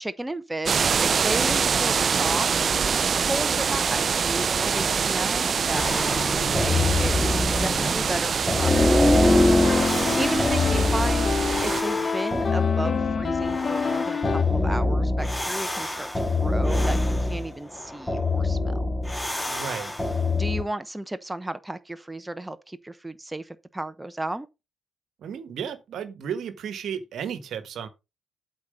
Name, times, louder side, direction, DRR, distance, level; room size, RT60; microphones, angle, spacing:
voice 1, 0.0-2.5 3.2-7.1 7.6-9.2 10.2-11.3 11.6-16.1 16.4-18.9 20.3-24.5, right 1 dB, 10° right, 0.9 m, -34 dB
sound 1, 0.7-11.8, right 6 dB, 45° right, 0.6 m, -25 dB
sound 2, 5.7-20.6, left 2 dB, 10° left, 2.3 m, -24 dB
sound 3, 9.2-14.4, left 5 dB, 45° left, 0.8 m, -27 dB
voice 2, 19.5-19.9 25.2-27.9, right 8 dB, 65° right, 1.3 m, -34 dB
8.3 x 4.3 x 6.5 m
hypercardioid pair, 50°, 0 cm